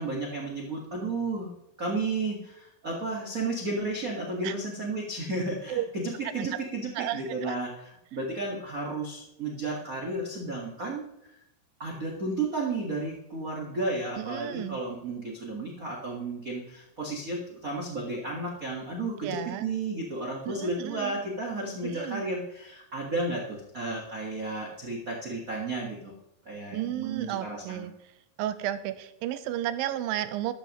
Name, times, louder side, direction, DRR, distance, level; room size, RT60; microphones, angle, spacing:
voice 1, 0.0-1.5 1.8-7.7 8.1-11.1 11.8-26.1 26.4-27.9, right 2 dB, 60° right, -1 dB, 0.8 m, -33 dB
voice 2, 6.2-6.6 7.0-7.6 14.2-14.8 19.2-19.6 20.5-21.2 21.8-22.2 26.7-27.9 28.4-30.5, right 12 dB, 80° right, 12 dB, 2.3 m, -33 dB
13.0 x 12.5 x 3.0 m, 0.83 s
omnidirectional pair, 4.3 m